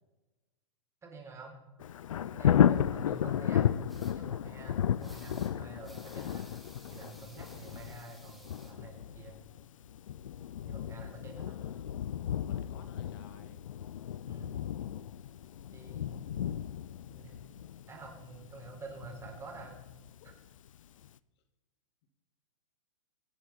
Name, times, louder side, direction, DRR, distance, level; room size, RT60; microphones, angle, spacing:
voice 1, 1.0-1.6 2.3-3.6 4.1-6.4 6.9-9.3 10.6-11.6 14.3-14.6 15.7-16.6 17.1-17.4 17.9-19.8 20.2-20.3, right 3 dB, 15° right, 1 dB, 4.2 m, -48 dB
Thunder, 1.8-20.6 21.0-21.1, left 10 dB, 75° left, 0.6 m, -33 dB
sound 1, 3.9-4.1 5.0-5.5 5.8-8.7, right 1 dB, ahead, 3.4 m, -56 dB
voice 2, 11.4-12.0 12.3-13.7 20.2-20.3 22.0-22.1, left 6 dB, 50° left, 8 dB, 2.2 m, -56 dB
24.0 x 8.0 x 4.4 m, 1.1 s
hypercardioid pair, 120°, 17 cm